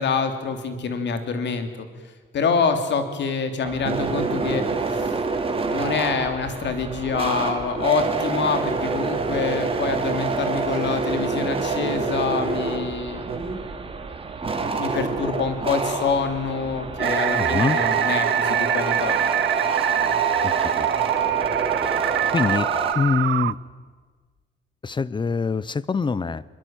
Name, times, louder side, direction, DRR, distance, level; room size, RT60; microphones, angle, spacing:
voice 1, 0.0-1.9 2.3-5.1 5.6-13.4 14.8-19.2, left 5 dB, 65° left, 8 dB, 3.2 m, -26 dB
sound 1, 3.6-22.9, right 4 dB, 30° right, 3.0 m, -26 dB
sound 2, 17.0-23.5, right 13 dB, 70° right, 0.7 m, -24 dB
voice 2, 17.3-17.8 20.4-20.9 22.3-22.7 22.9-23.6 24.8-26.4, left 4 dB, 25° left, 19 dB, 0.7 m, -24 dB
23.0 x 22.5 x 9.1 m, 1.4 s
cardioid pair, 135°, 19 cm